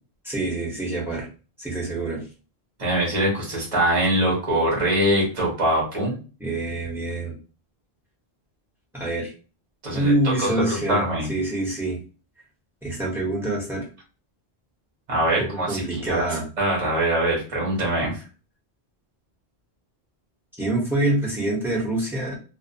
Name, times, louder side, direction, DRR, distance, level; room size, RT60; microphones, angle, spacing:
voice 1, 0.2-1.3 1.6-2.2 6.4-7.4 8.9-9.3 9.9-11.0 11.3-12.0 12.8-13.9 15.4-16.5 20.6-22.4, right 2 dB, ahead, -3 dB, 0.8 m, -26 dB
voice 2, 2.8-6.2 9.8-11.3 15.1-16.3 16.6-18.1, right 1 dB, 35° right, -3 dB, 0.8 m, -23 dB
2.6 x 2.1 x 2.6 m, 0.34 s
omnidirectional pair, 1.1 m